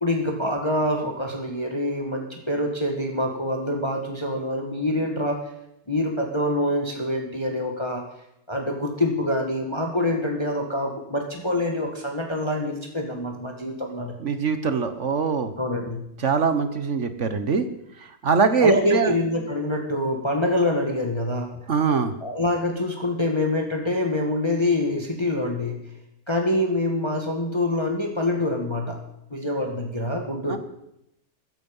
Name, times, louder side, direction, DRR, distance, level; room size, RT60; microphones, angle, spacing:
voice 1, 0.0-5.4 5.9-8.0 8.5-14.1 15.6-16.0 18.6-21.5 22.2-25.8 26.3-29.0 29.3-30.6, left 1 dB, 15° left, 2 dB, 2.0 m, -25 dB
voice 2, 14.2-15.5 16.2-17.6 18.2-19.1 21.7-22.1 30.5-30.6, right 5 dB, 50° right, 10 dB, 1.3 m, -22 dB
15.5 x 14.5 x 5.5 m, 0.79 s
omnidirectional pair, 1.8 m